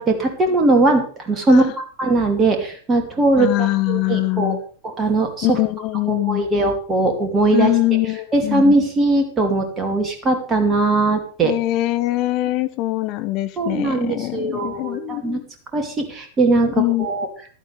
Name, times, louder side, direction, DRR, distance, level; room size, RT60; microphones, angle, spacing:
voice 1, 0.0-4.5 5.0-5.6 6.1-7.7 8.3-11.5 13.6-15.4 15.7-17.3, right 2 dB, 20° right, 4 dB, 2.7 m, -19 dB
voice 2, 3.4-4.6 5.4-6.5 7.5-8.7 11.4-15.4 16.8-17.1, left 18 dB, 40° left, 13 dB, 0.6 m, -22 dB
15.5 x 12.0 x 3.4 m, 0.43 s
figure-of-eight pair, 90°, 0 cm